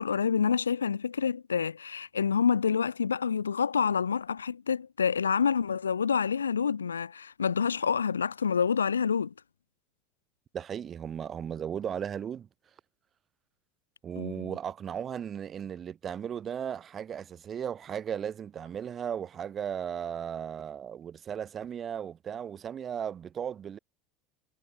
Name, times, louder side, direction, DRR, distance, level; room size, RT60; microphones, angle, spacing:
voice 1, 0.0-9.3 14.2-14.6, left 6 dB, 80° left, 0.5 m, -27 dB
voice 2, 10.5-12.5 14.0-23.8, right 8 dB, 35° right, 1.1 m, -36 dB
figure-of-eight pair, 70°, 0 cm